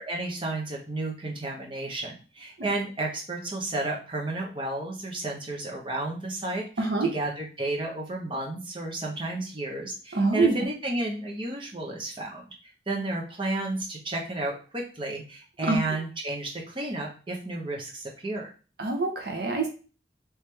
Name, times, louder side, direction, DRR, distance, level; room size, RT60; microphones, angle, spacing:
voice 1, 0.1-12.5 12.9-18.5, right 2 dB, 30° right, 0 dB, 0.8 m, -32 dB
voice 2, 6.8-7.1 10.1-10.5 15.6-15.8 18.8-19.7, right 3 dB, 60° right, 3 dB, 0.7 m, -25 dB
3.2 x 3.2 x 3.3 m, 0.36 s
head